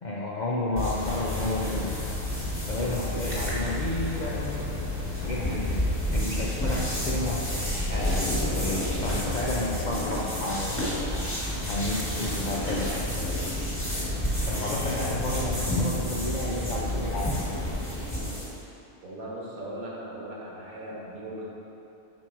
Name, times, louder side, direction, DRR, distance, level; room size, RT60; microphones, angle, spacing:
voice 1, 0.0-1.9 2.7-4.7 5.2-5.8 6.1-7.5 7.9-11.1 11.7-13.0 14.4-17.6, left 2 dB, 80° left, -5 dB, 0.4 m, -31 dB
sound 1, 0.8-18.6, left 1 dB, 10° left, 1.1 m, -30 dB
voice 2, 19.0-21.5, right 1 dB, 75° right, -5 dB, 1.5 m, -38 dB
5.3 x 4.5 x 4.5 m, 3.0 s
omnidirectional pair, 1.5 m